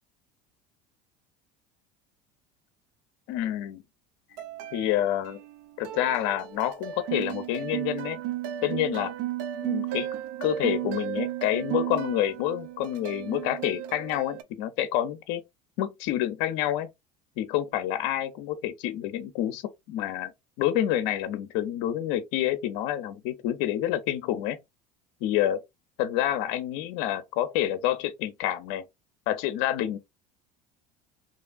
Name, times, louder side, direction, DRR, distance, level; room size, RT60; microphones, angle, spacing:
voice 1, 3.3-3.8 4.7-5.4 5.8-8.2 8.6-9.1 9.6-10.1 10.4-15.4 15.8-16.9 17.4-20.3 20.6-24.6 25.2-25.6 26.0-28.9 29.3-30.0, left 12 dB, 65° left, 0.5 m, -28 dB
sound 1, 4.4-5.6 5.8-14.4, right 12 dB, 75° right, 0.4 m, -34 dB
2.9 x 2.4 x 2.2 m
supercardioid pair, 85°, 21 cm